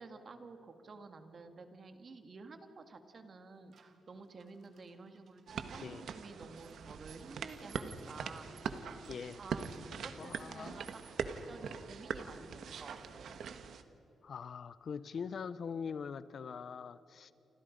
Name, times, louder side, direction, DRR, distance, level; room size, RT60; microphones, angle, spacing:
voice 1, 0.0-8.9 9.4-13.4, right 4 dB, 40° right, 7 dB, 2.0 m, -52 dB
sound 1, 3.7-5.6 6.6-11.7 12.7-13.4, right 6 dB, 55° right, 2.2 m, -62 dB
sound 2, 5.5-13.8, right 6 dB, 70° right, 1.4 m, -42 dB
voice 2, 9.1-9.4 10.2-10.8 14.2-17.3, left 6 dB, 50° left, 15 dB, 0.7 m, -43 dB
29.0 x 25.5 x 5.3 m, 2.8 s
wide cardioid pair, 155°, 0 cm